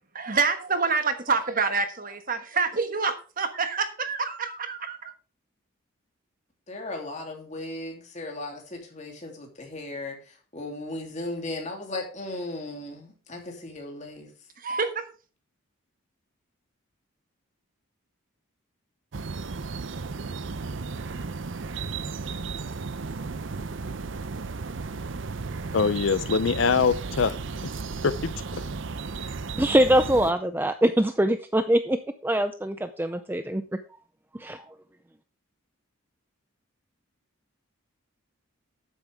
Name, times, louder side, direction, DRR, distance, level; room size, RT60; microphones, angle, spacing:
voice 1, 0.1-5.1 14.6-15.0, right 4 dB, 40° right, 1.3 m, -27 dB
voice 2, 6.7-14.3, left 2 dB, 30° left, 3.0 m, -36 dB
sound 1, 19.1-30.3, right 4 dB, 60° right, 0.6 m, -34 dB
voice 3, 25.7-27.4 27.6-27.7 28.0-28.3, left 5 dB, 60° left, 0.5 m, -23 dB
voice 4, 29.6-33.6 34.3-34.6, right 1 dB, 10° right, 0.4 m, -23 dB
12.0 x 9.1 x 3.5 m
head